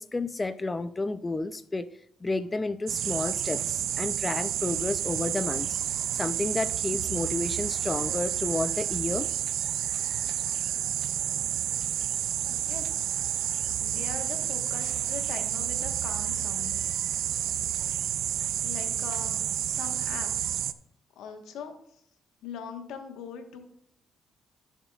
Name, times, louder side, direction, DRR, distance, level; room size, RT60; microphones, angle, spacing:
voice 1, 0.0-1.9 2.2-5.8 6.1-9.3, left 3 dB, 20° left, 11 dB, 0.5 m, -31 dB
sound 1, 2.9-20.7, right 11 dB, 80° right, 0.4 m, -30 dB
voice 2, 12.5-13.1 13.8-16.8 18.6-20.6 21.2-21.8 22.4-23.6, left 6 dB, 85° left, 5 dB, 1.3 m, -41 dB
15.0 x 7.2 x 2.4 m, 0.71 s
cardioid pair, 90°, 0 cm